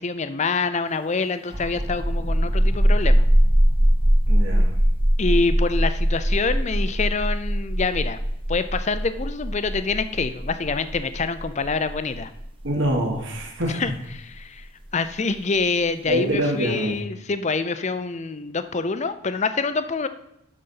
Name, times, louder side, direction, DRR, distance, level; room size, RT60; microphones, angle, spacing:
voice 1, 0.0-3.2 5.2-8.2 8.5-12.3 13.7-14.7 14.9-20.1, left 4 dB, 30° left, 11 dB, 0.5 m, -26 dB
sound 1, 1.4-14.8, equal, 25° right, 0.9 m, -21 dB
voice 2, 4.3-4.7 12.6-13.8 16.1-17.0, right 1 dB, 55° right, 1 dB, 1.7 m, -25 dB
12.0 x 4.1 x 5.6 m, 0.80 s
head